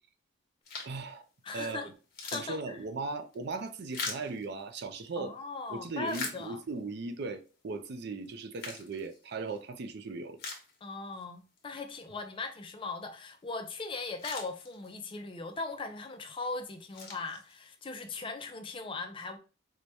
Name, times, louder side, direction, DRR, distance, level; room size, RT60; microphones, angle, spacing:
sound 1, 0.6-1.1 1.6-1.7 2.0-5.1 5.7-6.9 7.5-7.6 8.3-9.6 10.0-10.1 10.4-11.2 11.6-11.7 13.7-13.8 14.0-15.1 15.7-16.1 16.6-17.9, left 4 dB, 50° left, 0.9 m, -42 dB
voice 1, 0.8-1.2 1.5-1.9 2.3-5.4 5.7-10.4, right 3 dB, 55° right, 0.4 m, -38 dB
voice 2, 1.4-1.9 2.2-2.8 5.2-6.6 10.8-19.4, left 3 dB, 25° left, 0.4 m, -39 dB
4.5 x 2.2 x 2.6 m
head